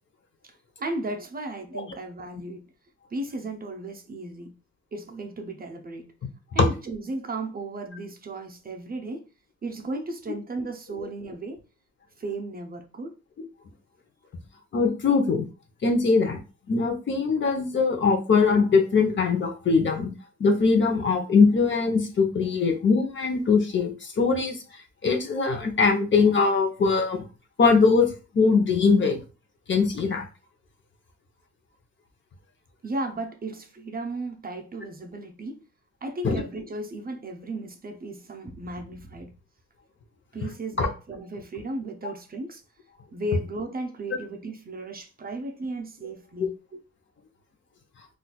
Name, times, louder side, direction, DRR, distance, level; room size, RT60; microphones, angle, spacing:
voice 1, 0.8-2.7 3.1-4.6 4.9-6.1 6.5-9.3 9.6-11.6 12.2-13.1 32.8-35.6 36.0-39.3 40.3-42.6 43.1-46.8, right 2 dB, 30° right, 0.6 m, -35 dB
voice 2, 14.7-15.4 15.8-16.4 16.7-20.1 20.4-24.6 25.0-27.2 27.6-28.1 28.3-29.2 29.7-30.3 36.2-36.4 40.8-40.9, left 4 dB, 40° left, 0.8 m, -21 dB
3.9 x 2.5 x 2.3 m
cardioid pair, 90°, 30 cm